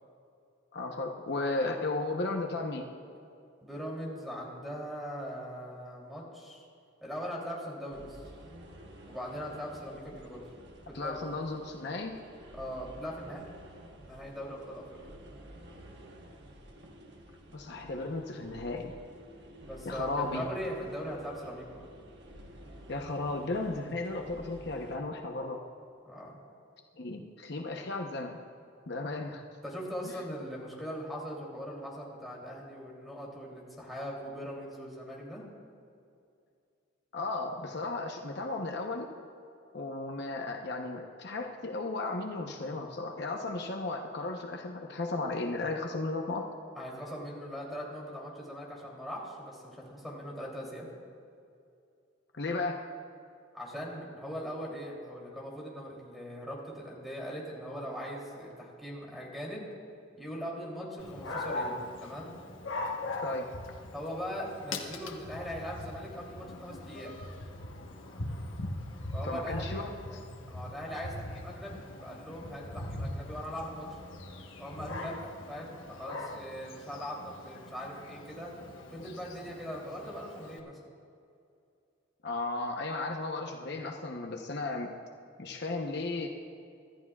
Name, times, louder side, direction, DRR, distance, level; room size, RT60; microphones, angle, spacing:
voice 1, 0.7-2.9 10.9-12.2 17.5-18.9 19.8-20.4 22.9-25.6 27.0-28.4 28.9-29.4 37.1-39.1 39.7-46.5 52.4-52.8 63.2-63.5 69.2-69.9 82.2-85.0 85.4-86.3, left 2 dB, 60° left, 2 dB, 0.9 m, -35 dB
voice 2, 3.6-6.7 7.0-8.2 9.1-10.4 10.9-11.2 12.5-13.4 14.1-14.8 19.6-21.8 26.0-26.3 29.6-35.4 46.7-50.9 53.5-59.7 60.2-62.4 63.9-67.1 69.1-69.9 70.5-74.0 74.6-78.5 78.9-80.8, equal, ahead, -3 dB, 3.0 m, -40 dB
sound 1, 7.9-25.0, equal, 60° right, 1.3 m, -51 dB
Dog, 61.0-80.6, left 2 dB, 90° left, 1.2 m, -41 dB
25.0 x 13.5 x 2.4 m, 2.5 s
head